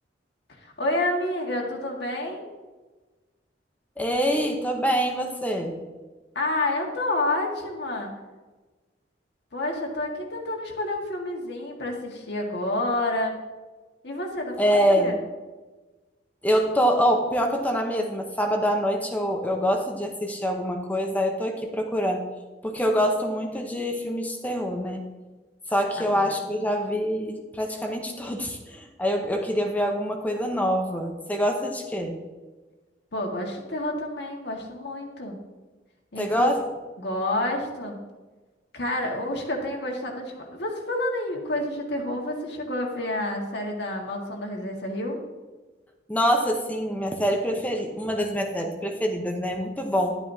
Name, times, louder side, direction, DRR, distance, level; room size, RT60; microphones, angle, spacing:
voice 1, 0.6-2.4 6.4-8.1 9.5-13.3 14.0-14.6 15.0-15.2 26.0-26.1 33.1-35.4 36.1-36.5 37.0-38.0 38.7-45.2, left 1 dB, 65° left, 0 dB, 1.7 m, -29 dB
voice 2, 4.0-5.8 14.6-15.2 16.4-22.2 22.6-25.0 25.7-32.2 36.2-36.6 46.1-50.1, equal, 10° left, 3 dB, 0.8 m, -25 dB
11.5 x 9.0 x 2.8 m, 1.3 s
head